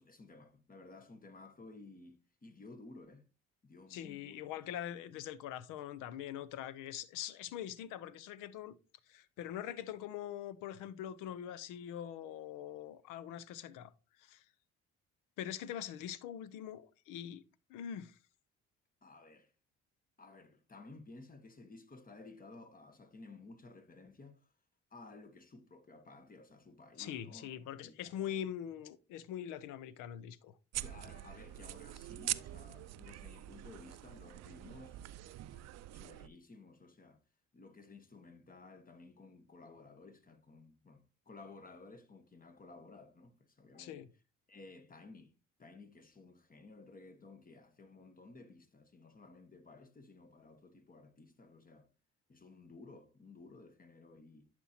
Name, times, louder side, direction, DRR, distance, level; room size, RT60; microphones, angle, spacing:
voice 1, 0.0-3.3 3.6-4.6 5.0-5.2 19.0-19.5 20.2-24.5 24.9-27.5 27.8-28.5 30.8-35.0 35.2-37.2 37.5-44.1 44.5-45.3 45.6-51.9 52.3-54.5, left 3 dB, 25° left, 1.3 m, -55 dB
voice 2, 3.9-8.8 9.1-13.9 14.2-14.4 15.4-17.4 17.7-18.2 27.0-30.5 43.7-44.1, left 10 dB, 80° left, 0.6 m, -43 dB
sound 1, 30.7-36.3, right 14 dB, 55° right, 0.4 m, -44 dB
11.0 x 4.5 x 2.8 m
supercardioid pair, 75°, 31 cm